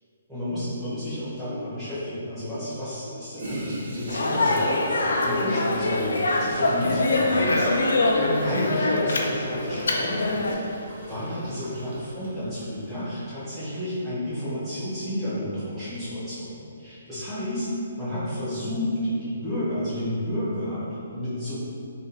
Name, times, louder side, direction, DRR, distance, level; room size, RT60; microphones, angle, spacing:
voice 1, 0.3-17.7 18.0-20.8 21.1-21.5, left 1 dB, 5° right, -15 dB, 0.8 m, -31 dB
Toilet flush, 3.4-12.8, right 1 dB, 60° right, 0.8 m, -36 dB
Speech, 4.1-10.5, left 2 dB, 75° left, 0.4 m, -24 dB
2.6 x 2.4 x 3.9 m, 2.7 s
hypercardioid pair, 180°, 0 cm